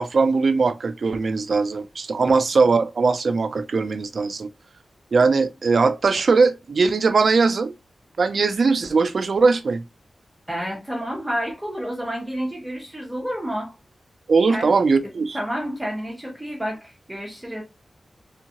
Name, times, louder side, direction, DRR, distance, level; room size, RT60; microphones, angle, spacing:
voice 1, 0.0-4.5 5.1-7.7 8.2-9.8 14.3-15.4, right 4 dB, 60° right, 0.5 m, -20 dB
voice 2, 10.5-13.8 14.5-17.6, equal, 10° right, 1.0 m, -30 dB
3.7 x 3.5 x 2.9 m
wide cardioid pair, 135°, 0 cm